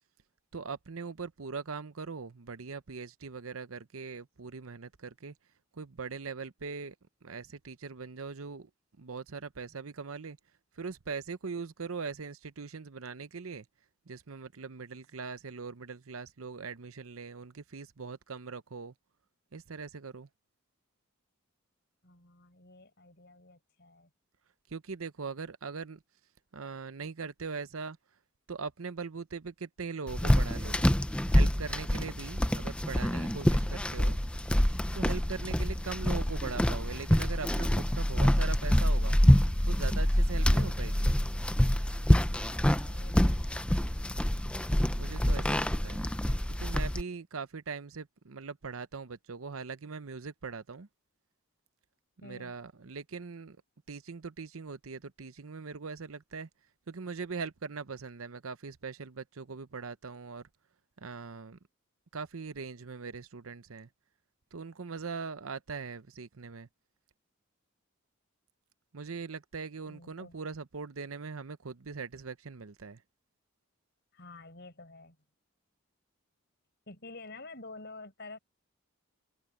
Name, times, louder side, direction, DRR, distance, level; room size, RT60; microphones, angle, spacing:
voice 1, 0.5-5.3 5.7-6.9 7.2-8.7 9.0-10.4 10.8-13.7 14.1-18.9 19.5-20.3 24.7-26.0 26.5-28.0 28.5-30.9 31.3-34.2 34.9-39.2 39.6-41.1 45.0-46.1 46.6-50.9 52.2-53.6 53.9-56.5 56.9-60.5 61.0-61.6 62.1-63.9 64.5-66.7 68.9-73.0, right 5 dB, 80° right, 0.8 m, -41 dB
voice 2, 22.0-24.1 33.6-34.0 42.5-43.6 52.2-52.6 69.9-70.4 74.1-75.2 76.9-78.4, left 3 dB, 50° left, 5.3 m, -50 dB
sound 1, 30.1-47.0, equal, 5° left, 0.5 m, -26 dB
head